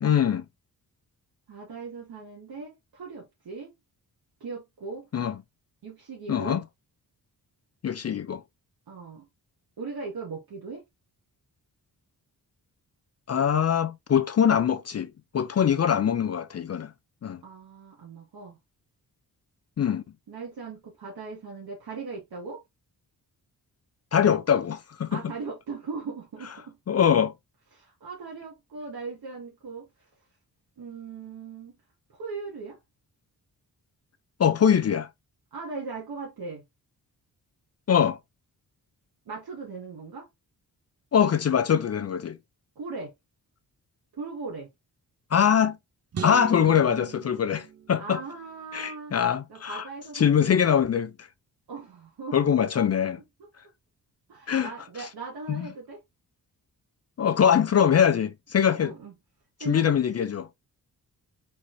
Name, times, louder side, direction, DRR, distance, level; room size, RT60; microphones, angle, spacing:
voice 1, 0.0-0.4 5.1-5.3 6.3-6.6 7.8-8.4 13.3-15.1 15.3-16.9 17.2-17.4 19.8-20.0 24.1-25.2 26.9-27.3 34.4-35.1 37.9-38.2 41.1-42.4 45.3-45.8 46.2-48.2 48.7-49.8 50.1-51.3 52.3-53.2 54.5-54.7 55.5-55.6 57.2-58.9 59.7-60.5, left 8 dB, 40° left, 0.5 m, -23 dB
voice 2, 1.5-3.7 4.4-5.1 5.8-6.6 8.9-9.3 9.8-10.8 17.4-18.6 20.3-22.6 25.1-26.8 27.7-29.9 30.8-31.8 32.1-32.8 35.5-36.6 39.3-40.3 42.8-43.1 44.1-44.7 48.0-49.1 49.5-50.6 51.7-52.6 54.3-56.0 58.5-59.1 59.6-59.8, right 4 dB, 75° right, 1.7 m, -39 dB
sound 1, 46.1-48.5, right 7 dB, 40° right, 0.6 m, -39 dB
4.7 x 4.2 x 2.6 m
wide cardioid pair, 155°, 38 cm